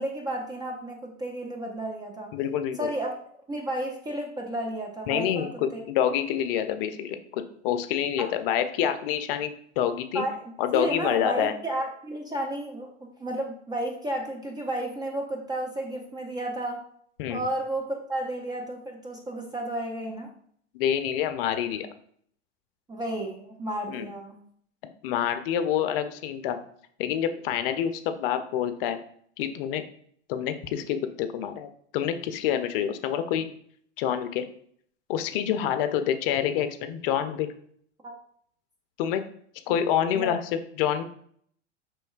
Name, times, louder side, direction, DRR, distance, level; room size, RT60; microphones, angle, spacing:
voice 1, 0.0-2.3 2.8-3.2 3.5-5.8 8.2-8.3 10.1-10.3 10.7-12.9 13.2-16.8 17.3-20.3 22.9-24.4 38.0-38.2 40.1-40.4, right 1 dB, 10° right, 0 dB, 0.4 m, -32 dB
voice 2, 2.3-2.9 5.1-5.5 5.9-10.2 10.6-11.5 17.2-17.4 20.7-21.9 23.9-24.1 25.0-26.6 27.0-29.0 29.4-29.8 30.3-31.7 31.9-33.5 34.0-34.5 35.1-37.5 39.0-39.2 39.7-41.0, left 9 dB, 50° left, 9 dB, 0.5 m, -27 dB
5.2 x 3.1 x 2.3 m, 0.63 s
hypercardioid pair, 95°, 36 cm